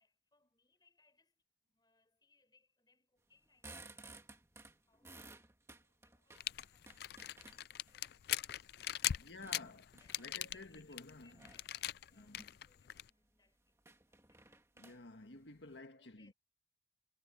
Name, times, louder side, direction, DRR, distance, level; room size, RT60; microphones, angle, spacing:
voice 1, 0.0-4.3 4.8-5.5 6.0-8.7 9.5-14.5 15.9-16.3, left 3 dB, 25° left, 6.1 m, -74 dB
sound 1, 3.3-7.9 8.5-10.5 11.3-11.7 12.2-12.6 12.9-13.0 13.3-13.4 13.8-15.8, right 2 dB, 15° right, 2.1 m, -57 dB
sound 2, 6.4-13.1, left 12 dB, 60° left, 0.4 m, -41 dB
voice 2, 9.2-9.9 10.2-11.4 12.1-12.5 14.8-16.3, left 3 dB, 85° left, 1.7 m, -52 dB
head